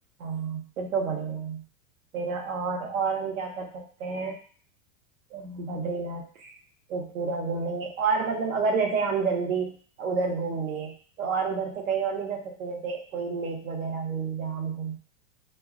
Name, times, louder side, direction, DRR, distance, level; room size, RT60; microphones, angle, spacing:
voice 1, 0.2-1.6 2.1-4.4 5.3-6.5 6.9-15.0, right 5 dB, 90° right, 2 dB, 0.9 m, -30 dB
2.2 x 2.0 x 3.5 m, 0.43 s
supercardioid pair, 125°, 40 cm